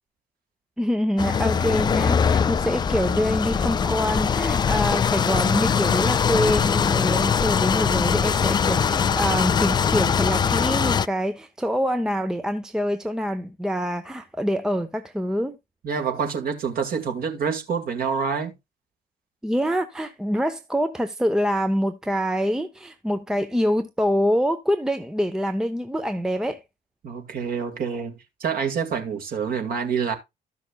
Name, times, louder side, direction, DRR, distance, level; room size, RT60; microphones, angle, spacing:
voice 1, 0.8-15.6 19.4-26.6, equal, 5° right, 0.7 m, -25 dB
sound 1, 1.2-11.1, left 7 dB, 20° left, 0.4 m, -22 dB
voice 2, 15.8-18.5 27.0-30.1, right 6 dB, 45° right, 2.0 m, -27 dB
14.0 x 6.0 x 2.3 m
figure-of-eight pair, 50°, 21 cm